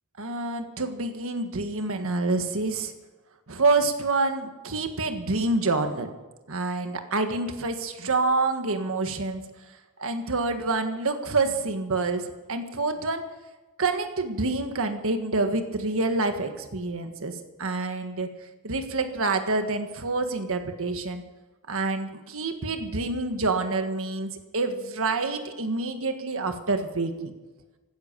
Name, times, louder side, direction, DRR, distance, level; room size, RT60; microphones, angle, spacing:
voice 1, 0.2-2.9 3.5-6.1 6.5-9.4 10.0-13.2 13.8-18.3 18.6-21.2 21.7-27.3, right 3 dB, 65° right, 7 dB, 1.6 m, -27 dB
16.0 x 13.0 x 6.8 m, 1.2 s
head